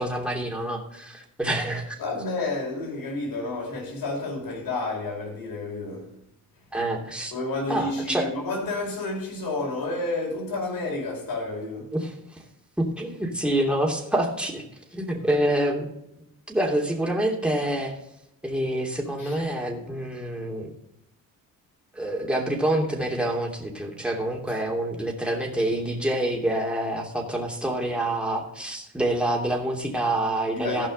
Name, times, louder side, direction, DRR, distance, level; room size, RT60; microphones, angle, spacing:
voice 1, 0.0-2.0 6.7-7.3 7.7-8.3 11.9-12.4 12.8-14.6 14.9-15.9 16.5-18.0 18.4-20.7 21.9-30.9, right 1 dB, 5° right, 2.9 m, -27 dB
voice 2, 2.0-6.2 7.3-11.9 19.2-19.4 24.5-24.6 30.5-30.9, left 2 dB, 70° left, 4.8 m, -30 dB
14.5 x 5.6 x 5.4 m
cardioid pair, 85°, 35 cm